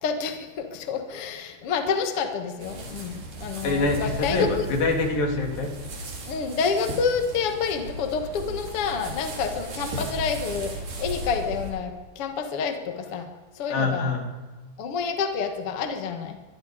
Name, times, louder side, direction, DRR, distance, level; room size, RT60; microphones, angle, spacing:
voice 1, 0.0-4.7 6.3-10.7 11.0-13.3 13.6-14.1 14.8-16.4, left 5 dB, 50° left, 6 dB, 1.9 m, -28 dB
sound 1, 2.6-11.7, right 1 dB, 60° right, 5.0 m, -36 dB
voice 2, 3.6-5.8 13.7-14.2, left 3 dB, 65° left, 2 dB, 4.7 m, -25 dB
23.5 x 22.0 x 5.1 m, 1.3 s
omnidirectional pair, 4.5 m